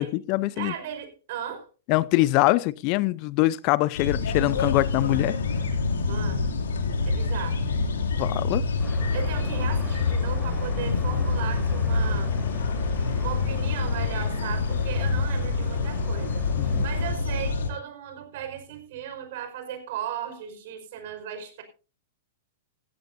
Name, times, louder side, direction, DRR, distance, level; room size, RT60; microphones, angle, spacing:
voice 1, 0.0-0.7 1.9-5.4 8.2-8.6 16.6-16.8, left 19 dB, 45° left, 0.6 m, -23 dB
voice 2, 0.6-1.7 6.0-6.5 7.1-7.7 9.1-12.3 13.2-21.6, right 9 dB, 60° right, 5.1 m, -36 dB
sound 1, 4.0-17.7, left 4 dB, 75° left, 2.7 m, -26 dB
sound 2, 8.8-17.1, left 1 dB, 10° left, 5.4 m, -43 dB
17.5 x 15.0 x 2.7 m
hypercardioid pair, 110°, 0 cm